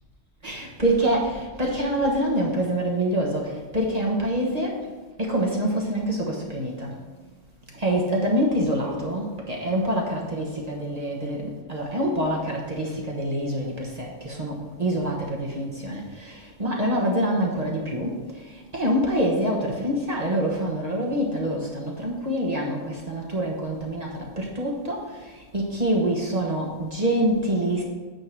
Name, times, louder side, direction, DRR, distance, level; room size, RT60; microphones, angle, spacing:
voice 1, 0.4-4.9 5.2-7.1 7.7-27.8, right 1 dB, 35° right, -2 dB, 1.2 m, -26 dB
9.1 x 3.8 x 6.0 m, 1.4 s
omnidirectional pair, 1.3 m